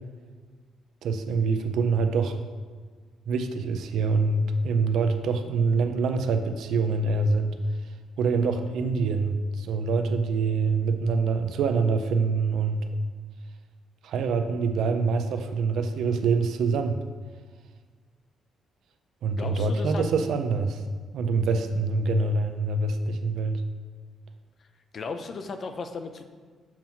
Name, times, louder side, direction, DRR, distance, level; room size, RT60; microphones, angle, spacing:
voice 1, 1.0-2.4 3.3-7.6 8.2-12.9 14.0-17.0 19.2-20.8 21.1-23.6, right 4 dB, 75° right, 8 dB, 0.5 m, -25 dB
voice 2, 19.4-20.0 24.9-26.3, left 4 dB, 50° left, 7 dB, 0.5 m, -35 dB
7.3 x 3.0 x 5.6 m, 1.5 s
cardioid pair, 90°, 0 cm